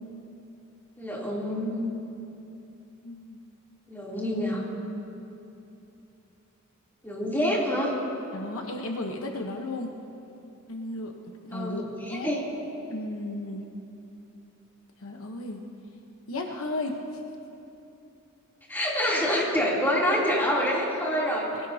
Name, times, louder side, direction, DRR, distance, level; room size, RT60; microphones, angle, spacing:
voice 1, 1.0-1.8 3.9-4.6 7.0-7.9 11.5-12.4 18.7-21.5, equal, 10° left, -5 dB, 3.1 m, -26 dB
voice 2, 3.0-3.4 8.3-9.9 10.7-11.1 11.5-11.8 12.1-12.3 12.9-13.7 15.0-15.6 16.3-17.0, left 2 dB, 70° left, 2 dB, 1.1 m, -34 dB
23.0 x 17.0 x 2.8 m, 2.8 s
head